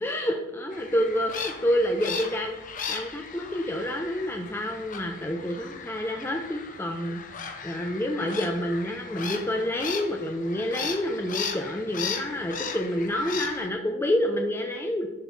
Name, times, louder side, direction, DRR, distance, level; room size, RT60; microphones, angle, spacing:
voice 1, 0.0-2.6 2.9-15.1, equal, 10° left, 2 dB, 0.6 m, -28 dB
sound 1, 0.7-13.7, left 6 dB, 45° left, 0.8 m, -37 dB
10.5 x 4.0 x 5.4 m, 1.0 s
head